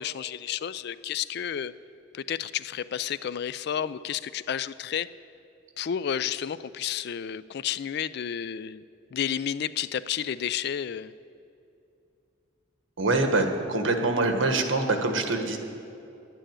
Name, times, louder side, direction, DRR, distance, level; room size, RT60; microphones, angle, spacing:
voice 1, 0.0-1.7 2.1-5.1 5.8-8.8 9.1-11.1, left 9 dB, 55° left, 16 dB, 0.3 m, -31 dB
voice 2, 13.0-15.6, right 2 dB, 85° right, 5 dB, 1.4 m, -24 dB
11.0 x 9.1 x 8.9 m, 2.7 s
head